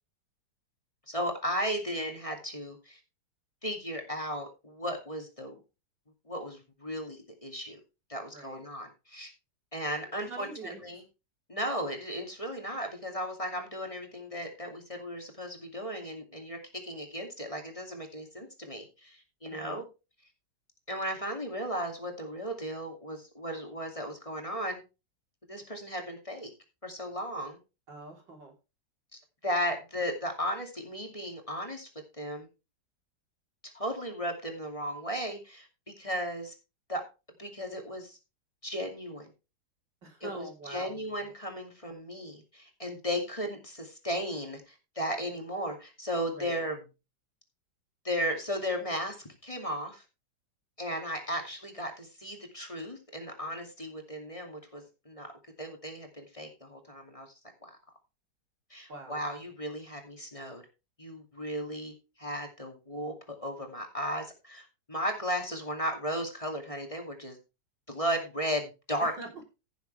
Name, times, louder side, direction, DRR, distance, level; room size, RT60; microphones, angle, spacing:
voice 1, 1.1-3.0 3.6-5.6 6.3-7.8 8.1-9.3 9.7-11.0 11.5-19.8 20.9-24.8 25.5-26.5 26.8-27.6 29.1-31.9 32.2-32.5 33.6-35.7 36.0-36.5 36.9-37.0 37.4-38.2 38.6-39.3 40.2-46.8 48.0-50.0 50.8-55.3 55.6-57.3 57.6-57.8 58.7-60.6 61.0-67.4 67.9-69.1, equal, 20° left, 3 dB, 2.4 m, -35 dB
voice 2, 10.2-10.8 19.5-19.9 27.9-28.5 40.0-41.0 46.3-46.6 58.9-59.2 69.0-69.4, right 3 dB, 90° right, 1 dB, 4.6 m, -44 dB
16.0 x 7.1 x 3.4 m, 0.29 s
omnidirectional pair, 1.9 m